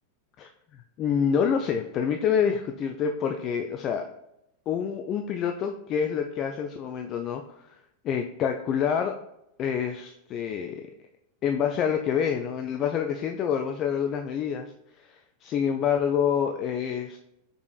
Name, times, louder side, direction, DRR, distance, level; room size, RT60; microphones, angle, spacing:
voice 1, 0.4-4.1 4.7-7.4 8.0-9.1 9.6-10.8 11.4-14.7 15.1-17.2, left 7 dB, 35° left, 5 dB, 0.3 m, -27 dB
5.3 x 4.3 x 2.3 m, 0.82 s
figure-of-eight pair, 90°, 0 cm